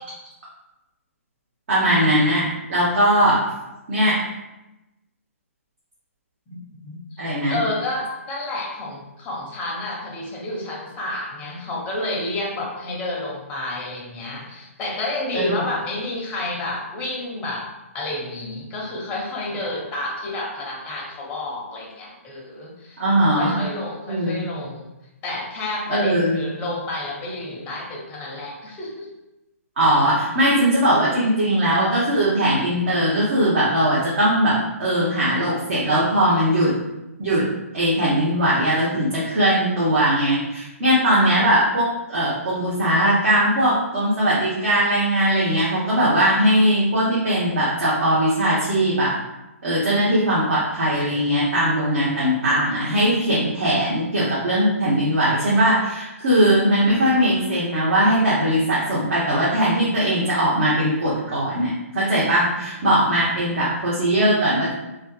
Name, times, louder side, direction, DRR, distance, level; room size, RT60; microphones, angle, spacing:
voice 1, 1.7-3.4 3.9-4.1 7.2-7.6 15.3-15.5 23.0-23.6 24.1-24.4 25.9-26.5 29.8-36.7 37.2-37.4 37.7-49.1 49.6-64.7, right 1 dB, 60° right, -8 dB, 0.8 m, -20 dB
voice 2, 6.5-7.2 7.5-17.7 17.9-24.9 25.2-29.1, left 2 dB, 20° left, -1 dB, 0.5 m, -30 dB
2.4 x 2.3 x 2.3 m, 0.96 s
figure-of-eight pair, 130°, 8 cm